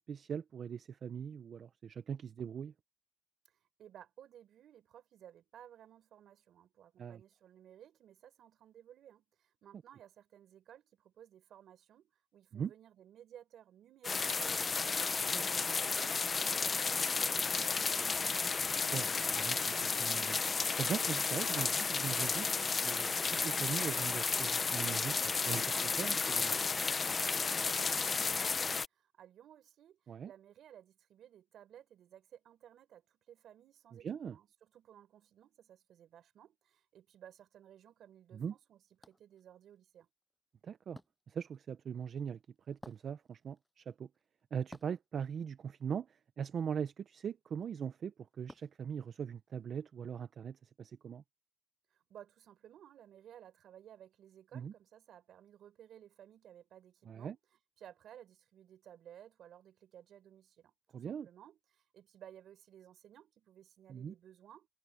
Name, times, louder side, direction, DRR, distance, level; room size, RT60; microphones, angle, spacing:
voice 1, 0.0-2.7 7.0-7.2 12.5-12.7 15.3-15.4 18.9-20.4 20.8-23.2 23.4-26.8 30.1-30.3 34.0-34.4 38.3-38.5 40.6-41.0 41.3-42.4 42.7-44.1 44.5-51.2 54.5-54.7 57.1-57.4 60.9-61.3 63.9-64.1, right 7 dB, 55° right, 0.8 m, -41 dB
voice 2, 3.8-18.3 27.5-40.1 51.9-57.4 57.8-64.7, right 10 dB, 70° right, 4.5 m, -57 dB
sound 1, 14.0-28.9, left 4 dB, 35° left, 0.9 m, -33 dB
Wood, 38.5-49.7, left 1 dB, 10° left, 7.2 m, -60 dB
cardioid pair, 90°, 0 cm